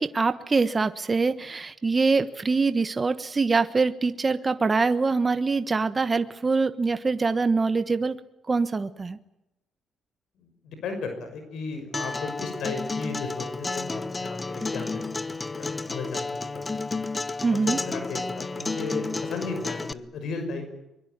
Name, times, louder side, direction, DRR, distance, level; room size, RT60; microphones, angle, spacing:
voice 1, 0.0-8.2 8.5-9.2 17.4-17.8, right 4 dB, 30° right, 11 dB, 1.2 m, -24 dB
voice 2, 10.4-17.0 17.5-20.7, left 4 dB, 75° left, 7 dB, 5.9 m, -35 dB
Acoustic guitar, 11.9-19.9, left 3 dB, 25° left, 1.1 m, -31 dB
23.5 x 22.5 x 9.5 m, 0.90 s
cardioid pair, 90°, 0 cm